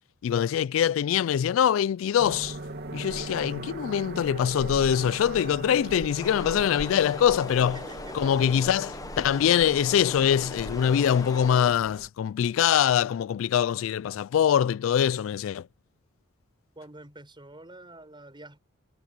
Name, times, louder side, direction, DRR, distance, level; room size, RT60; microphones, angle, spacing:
voice 1, 0.2-2.6 2.9-7.8 8.1-15.7, left 9 dB, 80° left, 0.3 m, -23 dB
sound 1, 2.2-12.1, right 2 dB, 55° right, 2.4 m, -40 dB
sound 2, 6.2-11.7, left 2 dB, 20° left, 1.0 m, -40 dB
voice 2, 7.6-8.7 16.7-18.6, right 2 dB, 25° right, 5.2 m, -47 dB
head